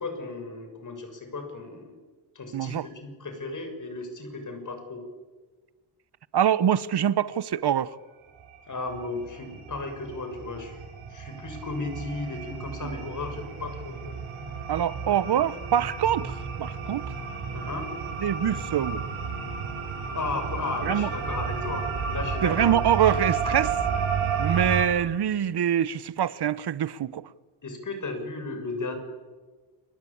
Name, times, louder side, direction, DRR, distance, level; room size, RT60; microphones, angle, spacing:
voice 1, 0.0-1.9 2.3-5.0 8.7-10.8 11.1-14.2 17.5-17.9 20.1-22.8 27.6-29.0, left 3 dB, 40° left, 6.8 m, -35 dB
voice 2, 2.5-2.9 6.3-7.9 14.7-17.1 18.2-19.0 20.8-21.1 22.4-23.8 24.4-27.2, right 9 dB, 55° right, 1.1 m, -24 dB
sound 1, 8.4-8.6 8.8-24.8, right 6 dB, 75° right, 7.3 m, -32 dB
29.5 x 22.5 x 8.8 m
cardioid pair, 125°, 49 cm